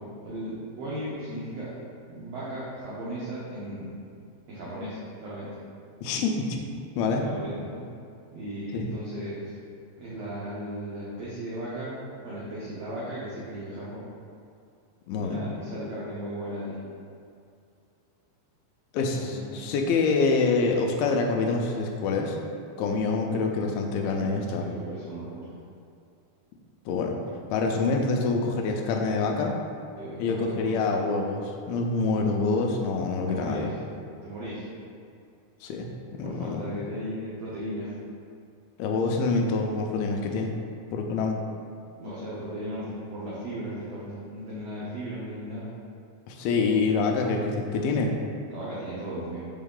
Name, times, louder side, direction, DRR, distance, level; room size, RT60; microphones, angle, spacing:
voice 1, 0.0-1.7 2.1-4.0 4.5-5.5 7.2-7.8 8.3-9.5 10.0-12.0 12.2-14.0 15.1-16.8 19.1-19.7 22.9-23.0 24.6-25.5 27.8-28.3 30.0-31.0 33.3-34.7 36.2-37.9 42.0-45.7 48.5-49.5, right 1 dB, 80° right, -8 dB, 1.4 m, -36 dB
voice 2, 6.0-6.6 7.0-7.2 8.7-8.9 15.1-15.4 18.9-22.4 22.8-24.7 26.9-27.2 27.5-29.6 30.2-33.7 35.6-36.7 38.8-40.5 40.9-41.4 46.3-48.1, left 4 dB, 85° left, 2 dB, 2.4 m, -26 dB
6.1 x 4.5 x 3.7 m, 2.4 s
omnidirectional pair, 4.4 m